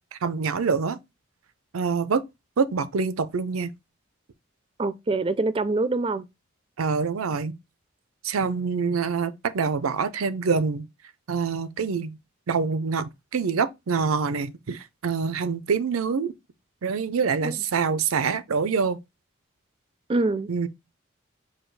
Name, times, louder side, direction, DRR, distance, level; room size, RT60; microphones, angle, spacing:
voice 1, 0.1-1.0 1.7-2.2 2.6-3.7 6.8-7.5 8.2-10.9 11.3-12.1 12.5-16.3 16.8-19.0 20.5-20.7, right 5 dB, 85° right, 0.5 m, -25 dB
voice 2, 4.8-6.2 17.4-17.6 20.1-20.5, right 2 dB, 25° right, 0.4 m, -25 dB
4.9 x 2.3 x 4.6 m
head